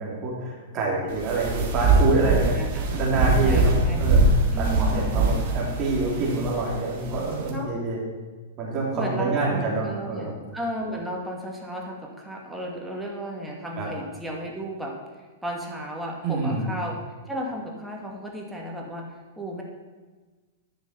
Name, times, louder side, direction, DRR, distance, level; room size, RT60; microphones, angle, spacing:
voice 1, 0.0-2.6 2.9-4.2 4.6-8.0 8.6-10.4 13.8-13.9 16.2-16.7, right 3 dB, 35° right, -3 dB, 3.5 m, -26 dB
sound 1, 1.1-7.5, right 2 dB, 50° right, 2.6 m, -23 dB
voice 2, 2.2-2.9 3.2-4.2 4.5-5.3 7.5-7.7 8.9-15.0 15.4-17.0 17.3-19.6, equal, 5° right, -1 dB, 2.3 m, -34 dB
10.5 x 6.9 x 5.9 m, 1.3 s
hypercardioid pair, 105°, 0 cm